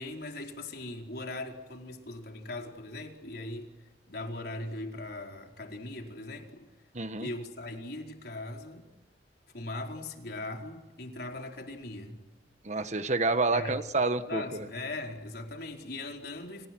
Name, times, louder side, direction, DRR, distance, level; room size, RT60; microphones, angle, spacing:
voice 1, 0.0-6.6 7.2-8.9 9.5-12.2 13.5-13.7 14.3-16.7, left 2 dB, 60° left, 2 dB, 4.7 m, -39 dB
voice 2, 6.9-7.3 12.6-14.7, right 3 dB, 40° right, 10 dB, 1.4 m, -28 dB
29.0 x 28.5 x 6.2 m, 1.1 s
head